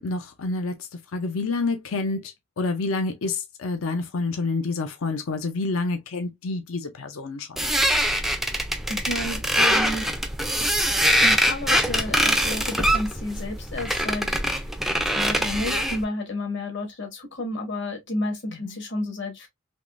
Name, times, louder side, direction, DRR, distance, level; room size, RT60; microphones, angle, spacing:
voice 1, 0.0-7.6 18.6-18.8, left 3 dB, 70° left, 0.5 m, -28 dB
sound 1, 7.6-16.0, equal, ahead, 0.3 m, -23 dB
voice 2, 8.9-10.1 11.2-14.7 15.1-19.5, left 1 dB, 55° left, 1.3 m, -31 dB
3.5 x 3.0 x 2.4 m
head